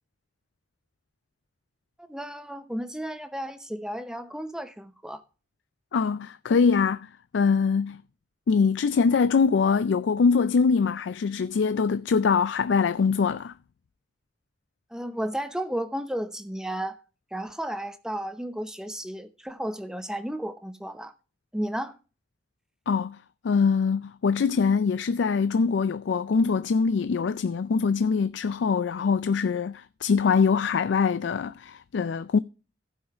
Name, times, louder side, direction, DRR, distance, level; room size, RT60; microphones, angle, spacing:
voice 1, 2.0-5.2 14.9-17.0 17.3-21.1 21.5-21.9, right 1 dB, 5° right, 0.8 m, -33 dB
voice 2, 5.9-8.0 8.5-13.5 22.9-23.2 23.4-32.4, left 5 dB, 75° left, 0.4 m, -23 dB
15.5 x 5.6 x 4.4 m
head